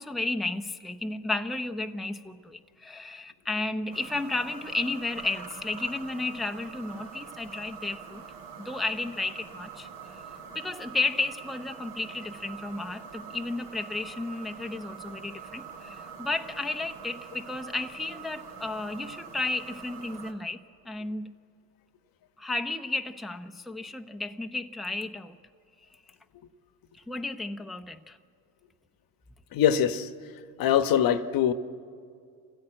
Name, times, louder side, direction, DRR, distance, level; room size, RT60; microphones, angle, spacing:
voice 1, 0.0-8.2 8.6-9.9 10.1-10.2 10.5-20.6 20.8-21.3 22.4-25.4 27.1-28.2, left 2 dB, ahead, 0.8 m, -33 dB
sound 1, 3.9-20.3, right 6 dB, 65° right, 3.6 m, -44 dB
voice 2, 29.5-30.1 30.6-31.5, left 9 dB, 50° left, 1.2 m, -23 dB
27.0 x 15.5 x 8.8 m
supercardioid pair, 90°, 44 cm